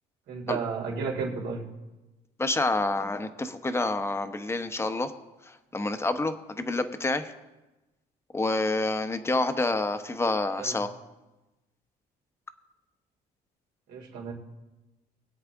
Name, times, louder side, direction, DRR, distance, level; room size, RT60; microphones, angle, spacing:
voice 1, 0.3-1.6 10.6-10.8 13.9-14.3, right 5 dB, 85° right, -2 dB, 3.2 m, -33 dB
voice 2, 2.4-5.1 5.7-7.3 8.3-10.9, left 2 dB, 15° left, 8 dB, 0.9 m, -28 dB
22.5 x 8.1 x 3.6 m, 1.1 s
cardioid pair, 110°, 17 cm